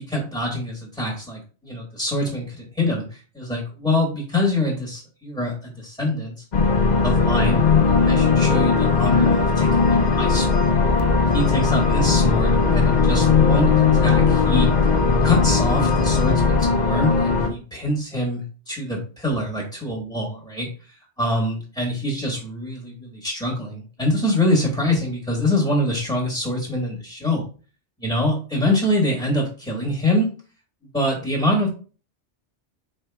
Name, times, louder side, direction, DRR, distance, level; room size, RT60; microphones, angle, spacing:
voice 1, 0.0-6.4 7.0-10.7 11.1-14.7 15.2-27.5 28.0-30.3 30.9-31.7, left 1 dB, 5° left, -2 dB, 1.1 m, -25 dB
sound 1, 6.5-17.5, left 4 dB, 45° left, 0.7 m, -18 dB
4.3 x 4.3 x 2.2 m, 0.37 s
omnidirectional pair, 1.2 m